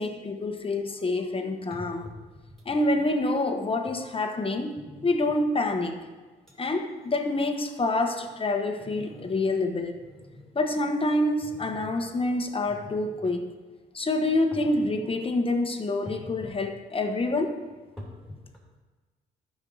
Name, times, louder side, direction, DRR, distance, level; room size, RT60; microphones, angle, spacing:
voice 1, 0.0-2.1 2.6-6.0 6.6-10.0 10.5-13.5 13.9-17.6, left 2 dB, 25° left, 5 dB, 1.2 m, -27 dB
sound 1, 1.2-1.3 1.7-2.9 3.9-4.0 4.8-5.4 6.0-6.1 6.5-6.6 6.9-7.2 7.7-9.5 9.8-10.6 11.4-11.9 12.5-13.3 14.3-15.1 16.1-16.6 17.0-18.8, left 1 dB, ahead, 3.0 m, -46 dB
12.5 x 5.4 x 4.7 m, 1.3 s
cardioid pair, 90°, 20 cm